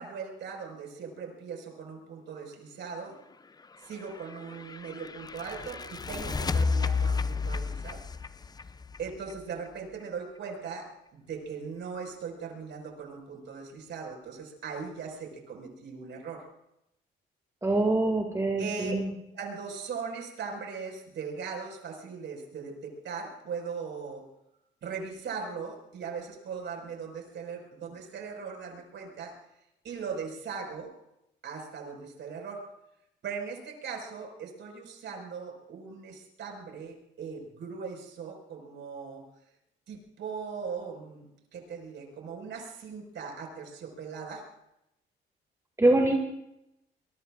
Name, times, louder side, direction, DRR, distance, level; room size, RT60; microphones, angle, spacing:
voice 1, 0.0-3.2 3.8-8.0 9.0-16.5 18.6-19.0 19.3-24.2 24.8-29.3 29.8-30.9 31.4-32.6 33.2-39.2 39.9-41.3 41.5-44.4, right 5 dB, 70° right, 1 dB, 5.4 m, -39 dB
sound 1, 3.9-9.7, left 4 dB, 20° left, 0.5 m, -32 dB
voice 2, 17.6-19.1 45.8-46.1, right 2 dB, 15° right, 1 dB, 2.3 m, -24 dB
24.0 x 23.0 x 2.5 m, 0.84 s
cardioid pair, 90°, 20 cm